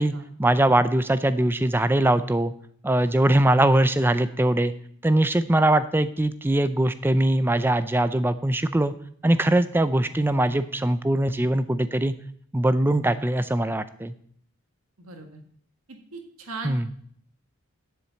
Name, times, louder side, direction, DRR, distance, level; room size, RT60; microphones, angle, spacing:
voice 1, 0.4-2.5 2.8-4.7 5.0-8.9 9.2-12.1 12.5-14.1 16.6-16.9, right 1 dB, 10° right, 13 dB, 0.4 m, -21 dB
voice 2, 15.0-15.4 15.9-16.9, right 3 dB, 85° right, 4 dB, 1.7 m, -39 dB
7.5 x 7.1 x 6.9 m, 0.63 s
head